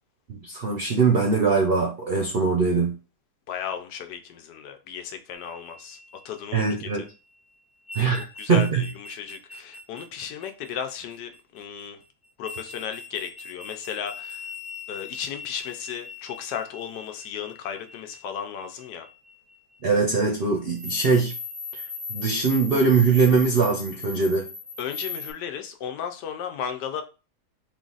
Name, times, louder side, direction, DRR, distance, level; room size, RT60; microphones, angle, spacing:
voice 1, 0.4-2.9 6.5-7.0 7.9-8.9 19.8-21.3 21.8-21.9 22.1-24.5, right 4 dB, 55° right, 0.6 m, -22 dB
voice 2, 3.5-6.0 6.2-6.9 8.4-12.0 12.4-14.5 14.9-19.1 24.8-27.0, left 8 dB, 85° left, 1.3 m, -35 dB
sound 1, 5.3-7.2 7.9-11.8 12.4-19.8 20.7-25.3, left 4 dB, 35° left, 0.3 m, -39 dB
3.8 x 2.5 x 3.9 m
omnidirectional pair, 1.8 m